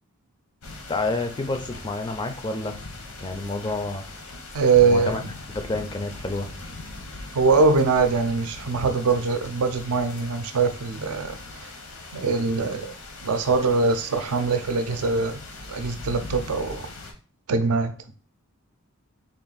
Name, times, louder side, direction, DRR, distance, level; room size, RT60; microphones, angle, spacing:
sound 1, 0.6-17.1, left 2 dB, 85° left, 0.8 m, -40 dB
voice 1, 0.9-2.8 3.2-4.0 4.8-5.2 5.5-6.5, left 2 dB, 20° left, 0.3 m, -29 dB
voice 2, 4.5-5.3 7.3-11.7 12.1-12.9 13.2-15.4 15.7-16.9 17.5-17.9, right 4 dB, 75° right, 0.5 m, -22 dB
3.5 x 2.4 x 4.0 m
head